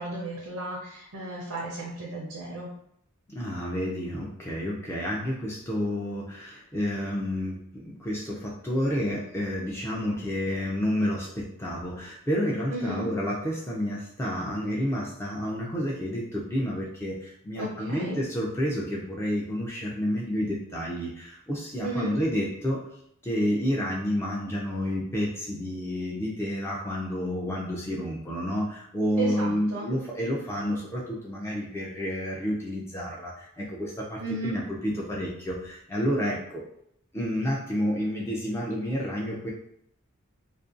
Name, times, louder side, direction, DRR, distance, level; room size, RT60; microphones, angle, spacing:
voice 1, 0.0-2.7 12.7-13.1 17.6-18.2 21.8-22.2 29.2-29.8 34.2-34.6, right 2 dB, 90° right, -4 dB, 0.6 m, -34 dB
voice 2, 3.3-22.8 23.2-36.6 37.1-39.5, equal, 10° left, -4 dB, 0.3 m, -30 dB
2.5 x 2.2 x 2.4 m, 0.72 s
head